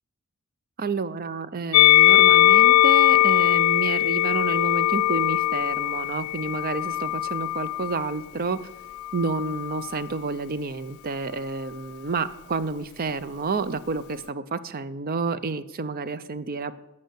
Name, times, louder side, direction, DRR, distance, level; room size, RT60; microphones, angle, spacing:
voice 1, 0.8-8.6 9.1-16.8, right 4 dB, 45° right, 15 dB, 0.6 m, -29 dB
Musical instrument, 1.7-8.1 9.0-10.0, left 14 dB, 80° left, 0.4 m, -20 dB
13.0 x 5.5 x 8.1 m, 0.96 s
head